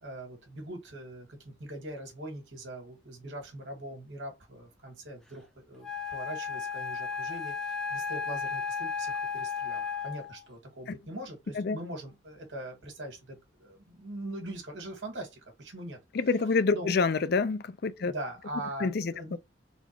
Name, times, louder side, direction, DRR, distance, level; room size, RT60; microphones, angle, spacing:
voice 1, 0.0-16.0 16.7-16.9 17.9-19.4, right 1 dB, 80° right, 1.9 m, -42 dB
Wind instrument woodwind instrument, 5.8-10.4, left 5 dB, 5° left, 0.5 m, -34 dB
voice 2, 16.1-18.1 18.8-19.4, left 4 dB, 55° left, 0.4 m, -27 dB
4.1 x 2.3 x 4.5 m
head